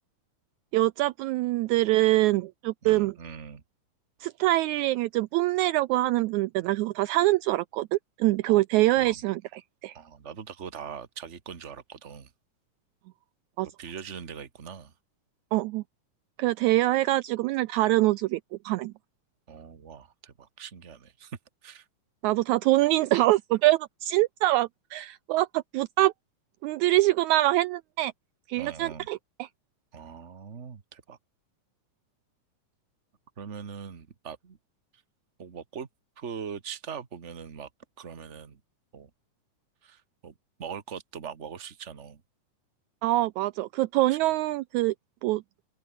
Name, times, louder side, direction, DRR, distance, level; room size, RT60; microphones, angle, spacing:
voice 1, 0.7-3.1 4.2-10.0 13.6-13.7 15.5-15.8 16.4-18.4 18.6-18.9 22.2-26.1 26.6-28.1 28.5-29.5 43.0-44.9 45.2-45.4, right 17 dB, 90° right, 1.6 m, -24 dB
voice 2, 2.8-3.6 8.5-8.6 8.9-9.2 9.9-12.3 13.8-14.9 19.5-21.8 28.6-29.1 29.9-31.2 33.4-34.6 35.4-35.9 36.2-37.7 38.0-38.6 38.9-39.1 39.8-40.3 40.6-42.2 44.1-44.2, right 7 dB, 70° right, 0.6 m, -41 dB
open air
omnidirectional pair, 3.9 m